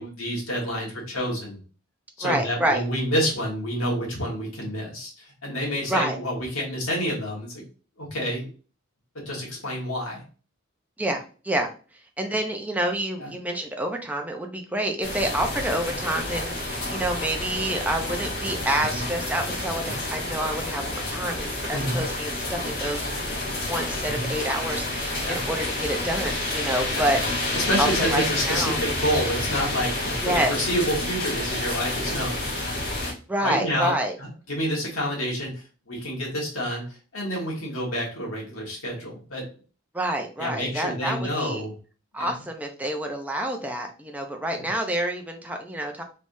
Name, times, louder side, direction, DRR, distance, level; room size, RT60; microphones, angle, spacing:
voice 1, 0.0-1.6 2.2-7.6 8.0-8.5 9.1-10.2 13.2-13.3 18.8-19.0 19.8-20.0 21.7-22.0 24.0-24.3 25.2-25.4 26.9-27.1 27.5-32.6 33.4-39.4 40.4-41.7 42.2-42.3 44.6-44.7, equal, 85° left, -3 dB, 1.4 m, -28 dB
voice 2, 2.2-2.8 5.9-6.2 11.0-11.7 12.2-23.2 23.7-27.2 27.8-28.8 30.2-30.6 33.3-34.1 39.9-41.6 42.1-46.0, right 1 dB, 5° right, 3 dB, 0.5 m, -28 dB
sound 1, 15.0-33.1, left 2 dB, 45° left, 1.3 m, -29 dB
3.4 x 3.3 x 2.6 m, 0.37 s
head